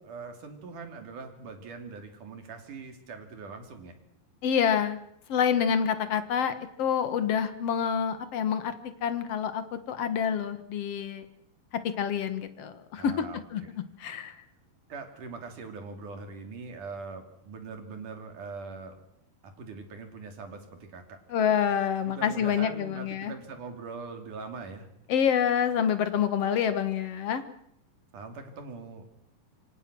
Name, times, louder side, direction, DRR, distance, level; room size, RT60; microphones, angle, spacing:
voice 1, 0.0-3.9 13.0-13.8 14.9-19.0 19.6-21.4 22.0-24.9 28.1-29.0, right 4 dB, 60° right, 6 dB, 4.3 m, -42 dB
voice 2, 4.4-5.0 5.3-8.7 9.0-11.2 12.0-13.1 13.5-13.6 14.0-14.4 21.3-23.3 25.1-27.4, left 8 dB, 55° left, 11 dB, 2.1 m, -27 dB
26.5 x 25.5 x 6.2 m, 0.75 s
omnidirectional pair, 4.1 m